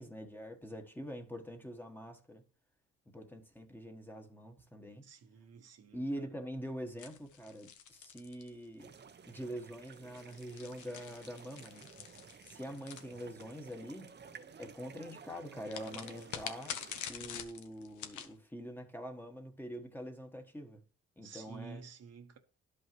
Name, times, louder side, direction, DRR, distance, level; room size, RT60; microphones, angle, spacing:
voice 1, 0.0-2.4 3.1-5.1 5.9-8.9 9.2-11.9 12.5-14.1 14.6-16.8 17.1-20.8 21.2-21.8, equal, 5° left, 1.2 m, -44 dB
voice 2, 5.0-6.3 21.2-22.4, right 6 dB, 55° right, 1.1 m, -51 dB
sound 1, 7.0-9.0 10.0-13.7 15.7-18.3, left 8 dB, 80° left, 1.1 m, -46 dB
sound 2, 8.8-17.1, right 6 dB, 35° right, 0.7 m, -54 dB
11.5 x 5.5 x 3.1 m
cardioid pair, 90°, 30 cm